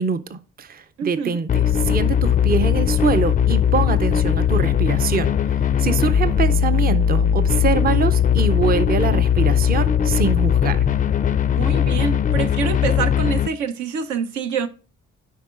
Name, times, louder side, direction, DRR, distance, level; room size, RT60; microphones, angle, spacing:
voice 1, 0.0-5.3 5.8-10.8, right 5 dB, 30° right, 0.6 m, -24 dB
voice 2, 1.0-1.4 9.1-9.2 11.5-14.7, right 6 dB, 75° right, 0.7 m, -26 dB
sound 1, 1.5-13.5, left 8 dB, 30° left, 0.3 m, -19 dB
10.0 x 4.8 x 2.4 m
cardioid pair, 90°, 30 cm